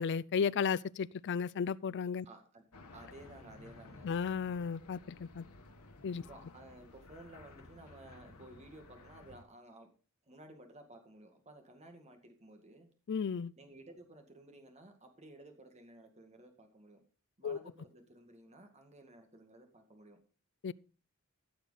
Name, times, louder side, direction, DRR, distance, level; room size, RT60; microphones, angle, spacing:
voice 1, 0.0-2.3 4.0-5.4 6.0-6.2 13.1-13.5 17.4-17.6 20.6-20.7, left 6 dB, 55° left, 0.4 m, -34 dB
voice 2, 2.3-2.6 2.9-4.1 6.1-9.9 10.3-12.9 13.6-17.0 17.4-20.2, right 1 dB, 30° right, 2.0 m, -55 dB
sound 1, 2.7-9.4, left 2 dB, 85° left, 1.5 m, -55 dB
15.0 x 6.5 x 4.1 m
head